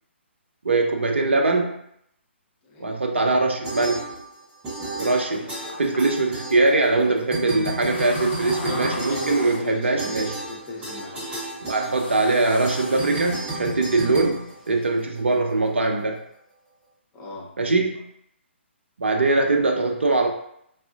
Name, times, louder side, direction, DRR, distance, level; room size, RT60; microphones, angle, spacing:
voice 1, 0.6-1.8 2.8-4.1 5.0-5.5 5.8-10.3 11.7-16.2 17.6-18.0 19.0-20.3, right 3 dB, 65° right, 2 dB, 0.5 m, -22 dB
voice 2, 2.6-3.0 5.3-5.4 8.2-11.3 15.0-15.4 17.1-17.9, left 1 dB, 20° left, -3 dB, 0.7 m, -38 dB
sound 1, 3.6-4.4 4.6-7.0 7.3-15.2, right 1 dB, 15° right, 0.8 m, -33 dB
sound 2, 4.7-14.9, left 2 dB, 50° left, 0.7 m, -41 dB
4.1 x 2.4 x 2.3 m, 0.73 s
figure-of-eight pair, 130°, 7 cm